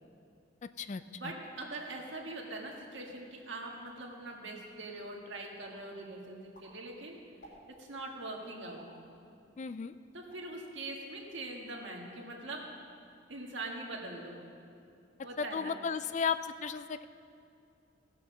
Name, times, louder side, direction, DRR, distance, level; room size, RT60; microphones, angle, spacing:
voice 1, 1.0-7.2 7.8-8.8 10.1-12.6 13.3-14.4 15.2-15.8, right 2 dB, 75° right, 0 dB, 1.8 m, -42 dB
sound 1, 2.7-2.9 3.4-3.5 3.7-4.2 4.7-5.2 5.6-5.9 6.3-8.0 8.8-9.1 9.7-10.6 11.0-11.2 11.5-12.0 12.3-12.8, right 1 dB, 55° left, 3.7 m, -60 dB
voice 2, 9.6-9.9 15.4-17.0, left 6 dB, 40° left, 12 dB, 0.3 m, -34 dB
17.0 x 6.8 x 6.2 m, 2.5 s
head